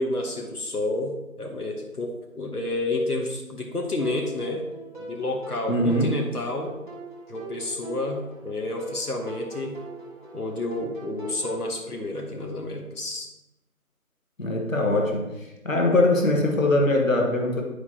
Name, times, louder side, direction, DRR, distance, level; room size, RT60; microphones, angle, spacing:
voice 1, 0.0-4.6 5.1-6.7 7.3-9.8 10.3-13.3, left 2 dB, 90° left, 2 dB, 1.2 m, -30 dB
sound 1, 4.0-11.7, right 4 dB, 30° left, 1.4 m, -41 dB
voice 2, 5.7-6.2 14.4-15.3 15.6-17.6, left 1 dB, 60° left, 1 dB, 1.3 m, -22 dB
9.5 x 4.9 x 2.8 m, 0.98 s
figure-of-eight pair, 175°, 44 cm